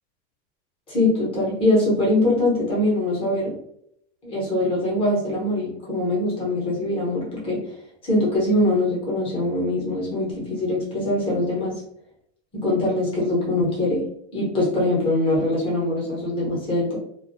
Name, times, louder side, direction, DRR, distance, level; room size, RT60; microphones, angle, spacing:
voice 1, 0.9-3.5 4.2-7.7 8.0-11.8 12.5-14.0 14.3-17.0, left 1 dB, 15° left, -5 dB, 0.8 m, -23 dB
2.5 x 2.3 x 2.5 m, 0.71 s
supercardioid pair, 165°, 36 cm